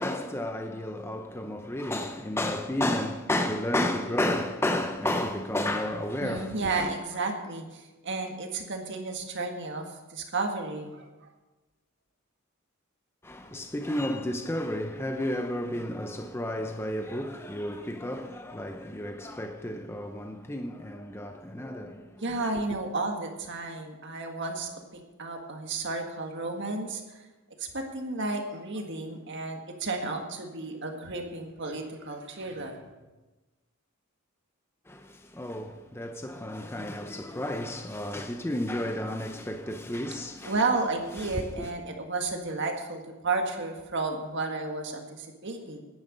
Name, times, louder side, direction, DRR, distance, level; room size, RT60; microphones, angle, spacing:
voice 1, 0.0-6.9 13.2-22.5 34.9-40.6 41.2-41.7, left 1 dB, 10° left, 0.6 m, -32 dB
voice 2, 6.2-11.3 22.2-27.2 27.6-32.8 40.4-45.8, right 3 dB, 55° right, 1.8 m, -32 dB
10.5 x 10.0 x 6.7 m
head